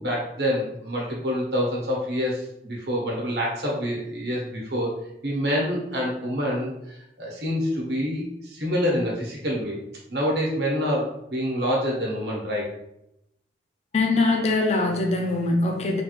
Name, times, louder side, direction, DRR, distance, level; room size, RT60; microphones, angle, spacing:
voice 1, 0.0-4.9 5.2-9.8 10.1-12.7, equal, 70° right, -3 dB, 1.0 m, -27 dB
voice 2, 13.9-16.0, left 3 dB, 40° left, 1 dB, 0.4 m, -22 dB
3.4 x 2.4 x 3.0 m, 0.82 s
head